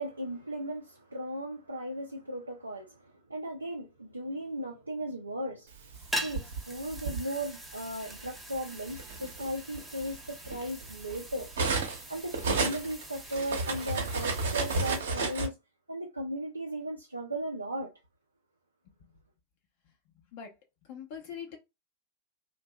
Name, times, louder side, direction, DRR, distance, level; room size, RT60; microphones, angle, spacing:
voice 1, 0.0-5.7 6.2-11.5 12.1-15.6 15.9-18.0, right 1 dB, 85° right, 0.4 m, -36 dB
sound 1, 5.9-15.0, equal, 5° right, 0.5 m, -43 dB
Cutlery silverware, 5.9-7.2 8.2-8.4 8.8-12.0 12.3-15.5, right 3 dB, 65° right, 0.8 m, -32 dB
voice 2, 20.8-21.6, left 7 dB, 55° left, 0.7 m, -42 dB
2.6 x 2.2 x 2.2 m
figure-of-eight pair, 85°, 0 cm